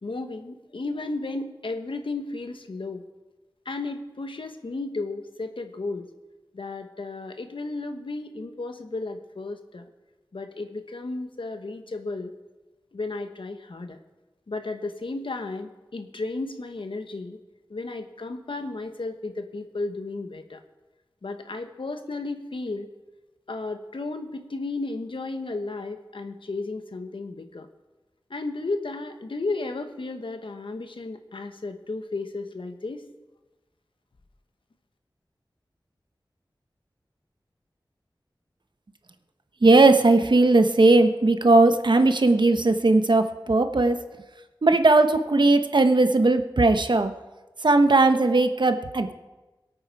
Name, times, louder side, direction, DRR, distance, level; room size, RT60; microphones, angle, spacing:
voice 1, 0.0-3.0 3.6-6.1 6.5-9.8 10.3-12.3 12.9-14.0 14.5-17.4 17.7-20.6 21.2-22.9 23.5-27.7 28.3-33.0, left 3 dB, 80° left, 7 dB, 1.2 m, -33 dB
voice 2, 39.6-44.0 44.6-47.1 47.6-49.1, right 2 dB, 65° right, 8 dB, 1.0 m, -18 dB
22.5 x 8.7 x 4.7 m, 1.1 s
wide cardioid pair, 70°, 9 cm